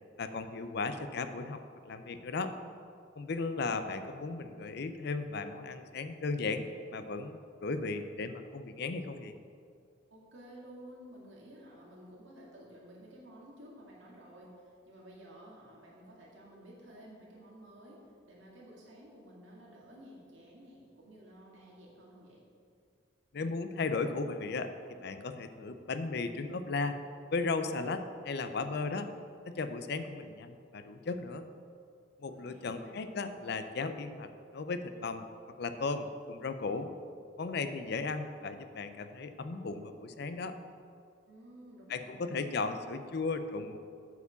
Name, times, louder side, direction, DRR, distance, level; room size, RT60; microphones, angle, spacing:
voice 1, 0.2-2.5 3.2-9.3 23.3-27.0 27.3-29.1 29.5-31.5 32.2-35.3 35.6-36.9 37.4-40.5 41.9-43.8, left 3 dB, 55° left, 10 dB, 0.5 m, -36 dB
voice 2, 10.1-22.4 32.3-33.0 41.3-42.5, equal, 75° right, -3 dB, 2.1 m, -53 dB
8.3 x 4.8 x 6.9 m, 2.3 s
head